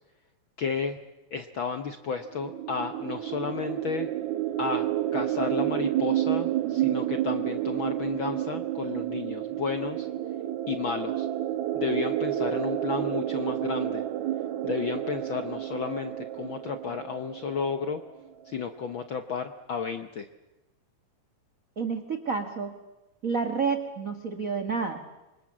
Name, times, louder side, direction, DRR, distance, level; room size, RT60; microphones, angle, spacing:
voice 1, 0.6-1.0 1.3-4.1 4.6-4.9 5.1-10.1 10.7-11.3 11.7-14.0 14.6-18.0 18.5-20.3, left 6 dB, 65° left, 8 dB, 1.2 m, -32 dB
sound 1, 2.3-18.0, right 13 dB, 70° right, 2.3 m, -30 dB
voice 2, 21.8-22.7 23.2-25.0, right 5 dB, 40° right, 6 dB, 1.3 m, -29 dB
26.5 x 24.5 x 7.4 m, 1.0 s
omnidirectional pair, 3.6 m